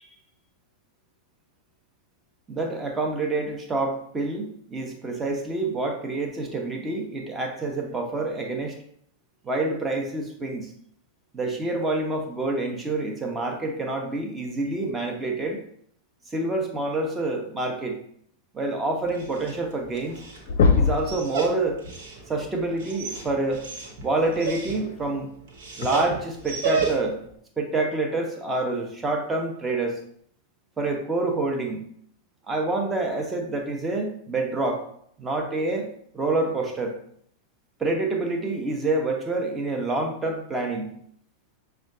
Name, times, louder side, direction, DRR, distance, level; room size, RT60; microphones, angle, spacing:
voice 1, 2.5-8.8 9.4-10.7 11.3-15.6 16.3-18.0 18.5-20.2 20.7-21.8 22.3-23.6 24.0-25.3 25.8-27.2 27.6-30.0 30.8-31.8 32.5-34.8 35.2-36.9 37.8-40.9, right 2 dB, 15° right, 2 dB, 0.9 m, -27 dB
Dog, 19.0-27.3, right 5 dB, 55° right, 1.1 m, -33 dB
sound 1, 20.0-20.2 20.5-21.1 22.8-22.9 24.8-24.9 25.8-25.9, left 5 dB, 55° left, 0.5 m, -20 dB
6.2 x 2.3 x 3.7 m, 0.65 s
figure-of-eight pair, 90°, 0 cm